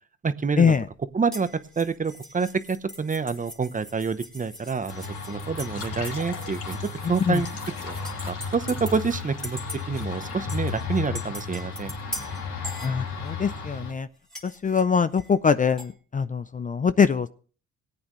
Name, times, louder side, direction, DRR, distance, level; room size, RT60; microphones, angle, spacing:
voice 1, 0.2-0.7 1.1-1.5 1.8-7.5 7.8-7.9 8.3-9.6 9.9-11.9, right 5 dB, 25° right, 12 dB, 0.8 m, -27 dB
sound 1, 1.3-9.2 9.4-10.1 10.5-13.5 14.3-15.9, left 1 dB, ahead, 2.9 m, -42 dB
sound 2, 4.9-13.9, left 5 dB, 80° left, 2.6 m, -34 dB
sound 3, 5.5-10.4, left 4 dB, 55° left, 3.1 m, -43 dB
voice 2, 12.8-14.1 14.4-17.3, left 6 dB, 25° left, 13 dB, 0.5 m, -23 dB
18.0 x 8.8 x 3.1 m, 0.39 s
cardioid pair, 90°, 30 cm